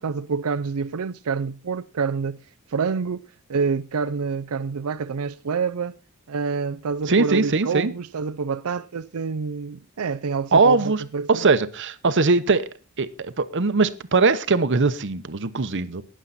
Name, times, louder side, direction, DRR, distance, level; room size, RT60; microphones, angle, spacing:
voice 1, 0.0-2.4 2.7-3.2 3.5-5.9 6.3-11.5, right 5 dB, 75° right, 0.5 m, -27 dB
voice 2, 7.1-7.9 10.5-11.0 11.3-12.7 13.0-16.0, right 4 dB, 55° right, 0.9 m, -20 dB
19.0 x 7.4 x 4.1 m
head